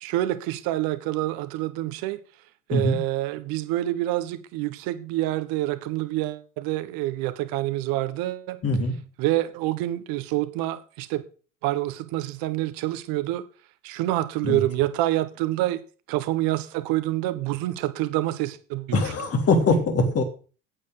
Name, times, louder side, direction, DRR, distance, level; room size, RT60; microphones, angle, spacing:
voice 1, 0.0-2.2 2.7-8.6 9.2-11.2 11.6-13.4 13.8-15.8 16.1-19.0, right 15 dB, 60° right, 1.4 m, -27 dB
voice 2, 8.6-8.9 14.4-14.6 18.9-20.2, left 2 dB, 35° left, 3.3 m, -22 dB
8.7 x 8.1 x 6.6 m
hypercardioid pair, 75°, 40 cm